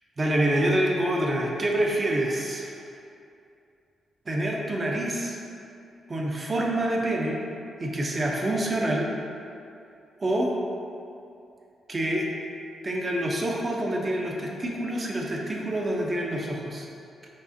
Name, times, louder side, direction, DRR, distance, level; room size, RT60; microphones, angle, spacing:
voice 1, 0.2-2.7 4.3-5.4 6.1-7.4 7.8-9.1 10.2-10.5 11.9-12.3 12.8-16.9, right 1 dB, 30° right, -1 dB, 0.5 m, -26 dB
5.1 x 2.4 x 2.6 m, 2.6 s
cardioid pair, 120°, 0 cm